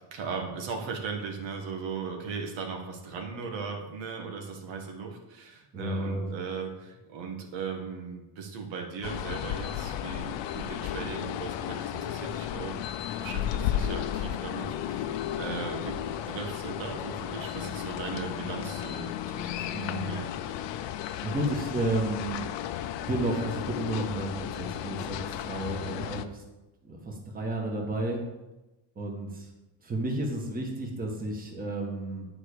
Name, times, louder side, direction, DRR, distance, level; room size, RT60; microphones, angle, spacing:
voice 1, 0.1-20.3, right 5 dB, 85° right, 2 dB, 1.8 m, -38 dB
voice 2, 5.7-6.3 19.7-20.1 21.2-22.4 22.9-26.4 26.8-28.2 28.9-29.5 29.8-32.3, right 1 dB, 20° right, 0 dB, 1.6 m, -32 dB
sound 1, 9.0-26.2, left 11 dB, 75° left, 0.7 m, -34 dB
9.7 x 4.9 x 6.8 m, 1.0 s
cardioid pair, 160°, 44 cm